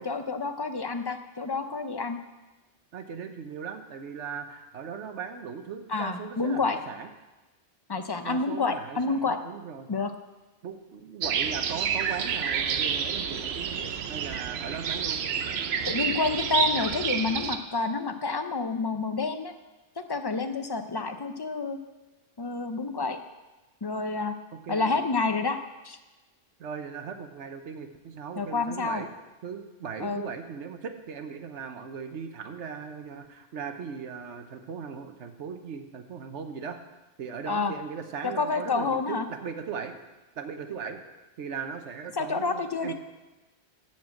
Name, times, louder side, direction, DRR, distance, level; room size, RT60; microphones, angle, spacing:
voice 1, 0.1-2.2 5.9-6.8 7.9-9.4 9.9-10.1 15.9-19.5 20.1-21.8 22.4-23.2 23.8-24.3 24.7-25.6 25.8-26.0 28.4-29.0 30.0-30.2 37.5-37.7 38.2-39.3 42.2-42.9, left 4 dB, 30° left, 8 dB, 0.5 m, -28 dB
voice 2, 2.9-7.1 8.2-9.9 10.6-15.2 24.6-24.9 26.6-29.1 29.4-36.8 37.2-40.0 40.4-41.0 41.4-42.9, right 6 dB, 90° right, 7 dB, 1.2 m, -38 dB
sound 1, 11.2-17.6, right 7 dB, 70° right, 0.9 m, -29 dB
13.0 x 4.5 x 7.7 m, 1.1 s
omnidirectional pair, 1.1 m